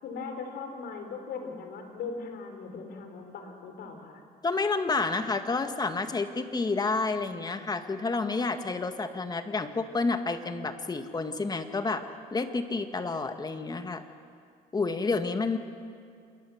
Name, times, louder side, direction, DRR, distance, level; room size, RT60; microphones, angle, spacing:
voice 1, 0.0-4.2, left 4 dB, 70° left, 5 dB, 4.3 m, -39 dB
voice 2, 4.4-12.0 12.3-14.0 14.7-15.6, left 3 dB, 25° left, 8 dB, 1.7 m, -29 dB
26.5 x 21.5 x 7.2 m, 2.3 s
cardioid pair, 110°, 17 cm